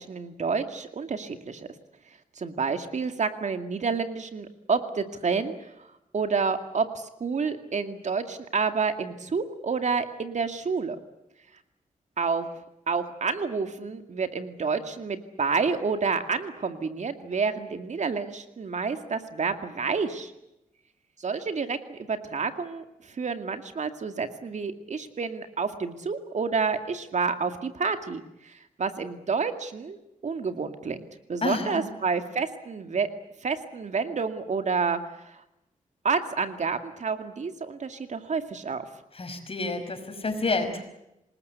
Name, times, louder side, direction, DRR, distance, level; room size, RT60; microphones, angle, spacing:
voice 1, 0.0-1.7 2.4-5.5 5.8-5.9 6.1-11.0 12.2-12.5 12.9-20.3 21.2-30.0 30.2-33.1 33.4-35.0 35.3-35.4 36.0-38.9, right 5 dB, 60° right, 8 dB, 2.3 m, -29 dB
voice 2, 31.4-31.8 39.1-40.8, left 3 dB, 45° left, 7 dB, 5.4 m, -29 dB
27.0 x 20.0 x 8.2 m, 0.87 s
cardioid pair, 85°, 14 cm